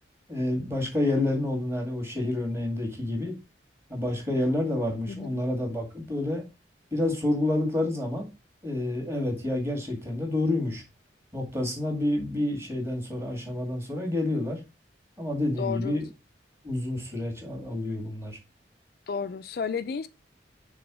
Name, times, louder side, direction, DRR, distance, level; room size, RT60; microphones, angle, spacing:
voice 1, 0.3-3.3 3.9-6.4 6.9-8.3 8.6-10.8 11.3-14.6 15.2-16.0 16.6-18.4, left 1 dB, 15° right, 2.2 m, -28 dB
voice 2, 5.1-5.4 15.6-16.0 19.1-20.1, left 6 dB, 55° left, 0.4 m, -32 dB
6.1 x 3.8 x 6.0 m
head